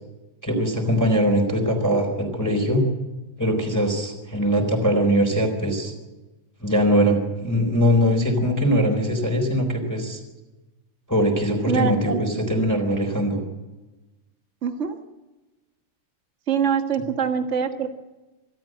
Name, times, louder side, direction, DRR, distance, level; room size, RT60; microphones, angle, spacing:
voice 1, 0.4-2.8 3.4-5.9 6.6-10.2 11.1-13.4, equal, 5° left, 1 dB, 3.8 m, -21 dB
voice 2, 11.7-12.5 14.6-14.9 16.5-17.9, right 7 dB, 70° right, 5 dB, 0.6 m, -24 dB
26.0 x 13.0 x 7.8 m, 1.1 s
omnidirectional pair, 3.8 m